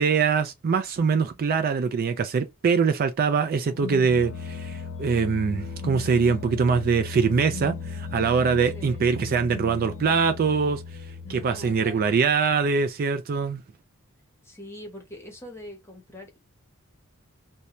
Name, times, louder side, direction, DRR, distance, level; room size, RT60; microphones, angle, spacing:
voice 1, 0.0-10.8 11.3-13.6, right 5 dB, 45° right, 0.3 m, -23 dB
sound 1, 3.6-12.4, left 4 dB, 60° left, 0.4 m, -37 dB
voice 2, 8.7-9.1 11.2-12.2 14.4-16.4, left 1 dB, 10° left, 0.8 m, -43 dB
2.6 x 2.1 x 2.9 m
head